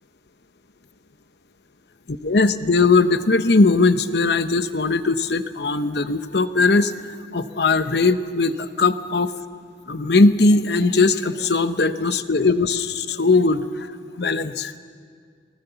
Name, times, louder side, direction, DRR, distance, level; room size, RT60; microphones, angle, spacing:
voice 1, 2.1-9.3 9.9-13.9 14.2-14.7, left 3 dB, 65° left, 11 dB, 0.9 m, -19 dB
26.5 x 18.5 x 7.0 m, 2.1 s
head